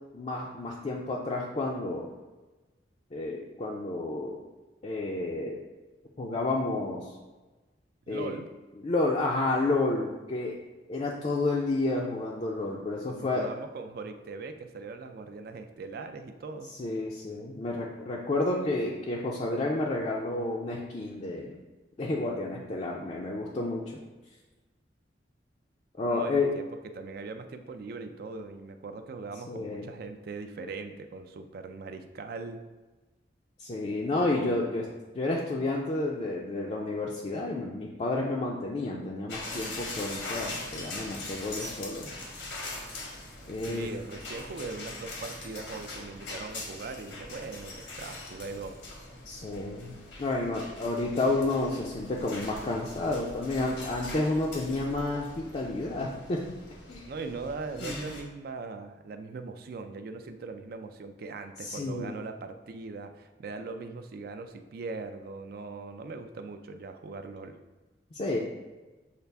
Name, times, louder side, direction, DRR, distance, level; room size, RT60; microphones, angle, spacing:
voice 1, 0.1-2.1 3.1-4.4 4.8-5.6 6.2-7.1 8.1-8.3 8.8-10.6 10.9-13.5 16.8-21.6 22.0-24.0 26.0-26.5 29.5-29.9 33.6-34.9 35.1-42.1 43.5-43.9 49.3-56.5 56.9-57.0 57.8-58.1 61.6-62.2 68.1-68.4, left 2 dB, 35° left, -3 dB, 0.4 m, -30 dB
voice 2, 8.1-8.5 13.2-16.7 26.0-26.6 26.9-32.6 43.7-48.8 57.1-67.6, right 4 dB, 55° right, 8 dB, 0.4 m, -40 dB
sound 1, 39.3-58.2, left 2 dB, 85° left, 1.1 m, -42 dB
6.6 x 2.4 x 3.4 m, 1.2 s
head